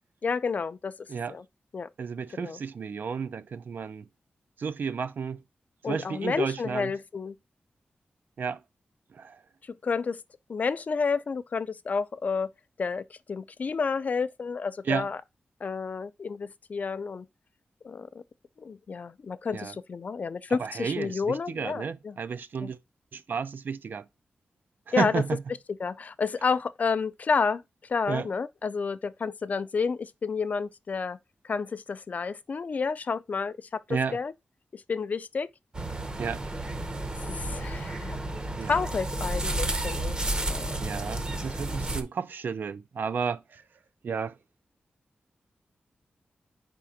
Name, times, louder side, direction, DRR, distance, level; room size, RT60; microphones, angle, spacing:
voice 1, 0.2-0.9 1.3-1.4 1.7-1.9 2.3-2.6 5.8-7.4 9.7-10.2 10.5-12.5 12.8-15.2 15.6-17.3 17.8-18.2 18.6-22.2 22.6-22.7 24.9-25.2 25.8-27.6 27.9-31.2 31.4-34.3 34.7-35.5 37.3-38.2 38.6-40.8, left 5 dB, 45° left, 0.4 m, -30 dB
voice 2, 2.0-4.0 4.6-5.4 5.8-6.9 8.4-8.6 9.1-9.4 14.9-15.1 19.5-19.7 20.6-22.8 23.1-24.0 25.0-25.4 28.1-28.3 33.9-34.2 36.2-36.4 38.6-38.8 40.8-43.6 44.0-44.3, right 6 dB, 60° right, 0.4 m, -32 dB
sound 1, 35.7-42.0, right 1 dB, 25° right, 0.7 m, -32 dB
5.0 x 3.7 x 5.7 m
wide cardioid pair, 170°, 4 cm